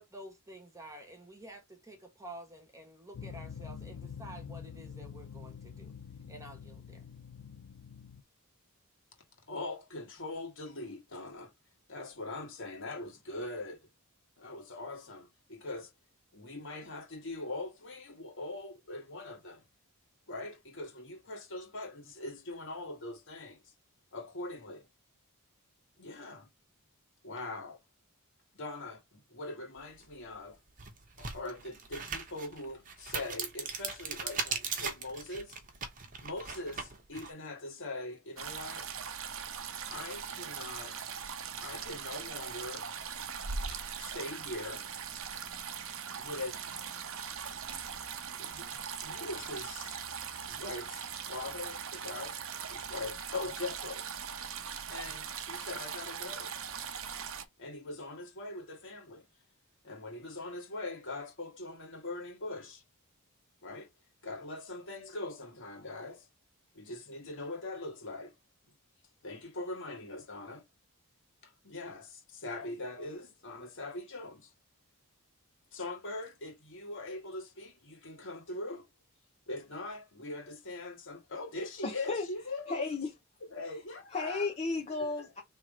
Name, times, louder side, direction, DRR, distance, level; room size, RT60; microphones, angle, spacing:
voice 1, 0.0-5.9 6.3-7.0, right 1 dB, 15° right, 1.5 m, -50 dB
sound 1, 3.1-8.2, left 7 dB, 75° left, 0.4 m, -46 dB
voice 2, 9.5-11.5 11.9-13.9 14.4-15.9 16.3-19.6 20.3-23.6 24.1-24.9 26.0-26.5 27.2-27.8 28.6-30.6 31.2-35.6 36.2-38.9 39.9-41.1 41.6-42.8 43.7-44.9 46.2-46.8 48.4-48.7 49.0-50.0 50.5-52.4 52.7-54.0 54.9-56.5 57.6-59.2 59.8-62.8 63.6-63.9 64.2-66.3 66.7-68.3 69.2-70.6 71.4-74.5 75.7-78.8 79.5-82.9 83.5-84.5 85.0-85.1, left 2 dB, 55° left, 1.7 m, -42 dB
sound 2, 30.0-30.1 30.7-37.3, right 5 dB, 35° right, 1.0 m, -39 dB
sound 3, 38.4-57.4, right 7 dB, 65° right, 0.8 m, -40 dB
voice 3, 81.8-82.3 82.7-83.1 84.1-85.4, left 3 dB, 30° left, 0.8 m, -34 dB
3.5 x 3.0 x 4.8 m
head